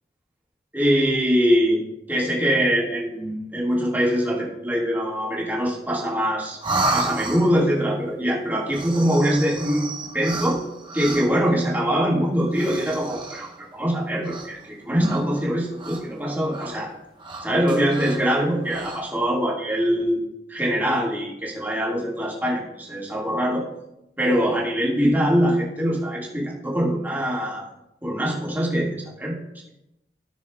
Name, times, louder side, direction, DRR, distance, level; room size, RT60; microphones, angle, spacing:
voice 1, 0.7-1.8 2.1-6.6 6.9-9.9 10.1-10.6 10.9-16.9 17.4-20.2 20.5-23.6 24.2-27.7 28.0-29.4, equal, 10° right, -4 dB, 1.8 m, -23 dB
sound 1, 6.6-7.7 8.6-11.5 12.5-13.6 14.2-14.7 15.0-16.2 16.5-16.7 17.2-18.3 18.6-19.0, right 2 dB, 25° right, 1.0 m, -31 dB
16.0 x 6.2 x 2.3 m, 0.87 s
head